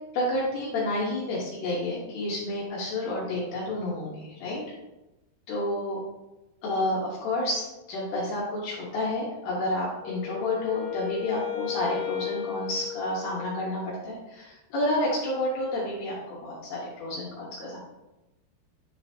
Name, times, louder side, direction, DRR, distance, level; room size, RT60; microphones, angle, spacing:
voice 1, 0.1-4.6 5.5-6.0 6.6-17.8, left 1 dB, 70° left, -6 dB, 2.9 m, -30 dB
Wind instrument woodwind instrument, 10.0-13.9, left 11 dB, 45° left, 1.3 m, -35 dB
10.5 x 3.9 x 2.8 m, 1.0 s
omnidirectional pair, 5.4 m